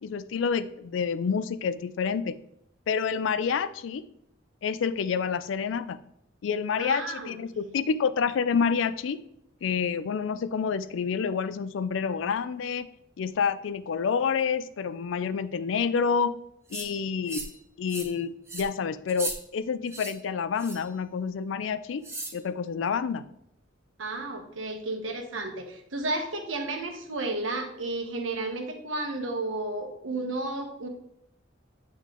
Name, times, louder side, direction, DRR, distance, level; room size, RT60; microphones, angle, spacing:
voice 1, 0.0-2.4 2.9-4.0 4.6-6.0 6.4-9.2 9.6-12.9 13.2-16.4 16.7-17.4 17.8-22.0 22.3-23.3, left 6 dB, 70° left, 13 dB, 0.4 m, -28 dB
voice 2, 6.8-7.4 24.0-30.9, right 2 dB, 85° right, 4 dB, 1.0 m, -32 dB
sound 1, 16.7-16.9 17.3-17.6 17.9-18.1 18.5-18.7 19.1-19.4 19.9-20.1 20.6-20.9 22.0-22.4, right 2 dB, 15° right, 0.9 m, -36 dB
8.2 x 3.2 x 3.7 m, 0.75 s
head